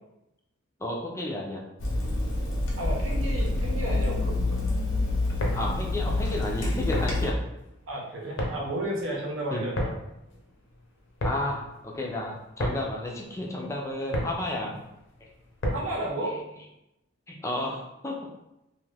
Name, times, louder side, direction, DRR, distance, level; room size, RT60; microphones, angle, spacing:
voice 1, 0.8-1.6 5.5-7.4 9.5-9.7 11.2-14.7 16.3-16.4 17.3-18.2, left 1 dB, 15° left, -2 dB, 0.4 m, -32 dB
Water tap faucet / Sink (filling or washing), 1.8-7.3, left 2 dB, 85° left, 0.9 m, -27 dB
voice 2, 2.8-4.6 7.9-9.9 14.7-14.8 15.7-16.3, right 1 dB, 80° right, -3 dB, 0.8 m, -33 dB
sound 1, 5.2-16.1, equal, 60° left, 0.6 m, -34 dB
2.6 x 2.4 x 3.2 m, 0.88 s
head